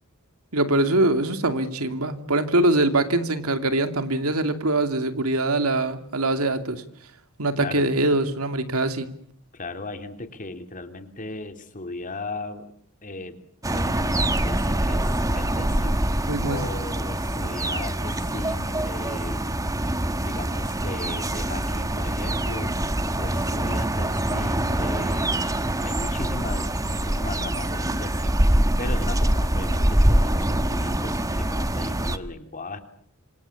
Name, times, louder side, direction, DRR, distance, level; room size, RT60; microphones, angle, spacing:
voice 1, 0.5-6.8 7.4-9.1 16.3-16.7, right 2 dB, 80° right, 8 dB, 2.7 m, -23 dB
voice 2, 7.6-7.9 9.5-12.7 13.0-13.4 13.7-16.0 16.5-19.4 20.2-22.7 23.2-25.6 25.8-28.4 28.8-32.8, left 2 dB, 40° left, 7 dB, 3.3 m, -37 dB
sound 1, 13.6-32.2, right 1 dB, 15° right, 1.4 m, -24 dB
27.5 x 26.0 x 8.5 m, 0.66 s
head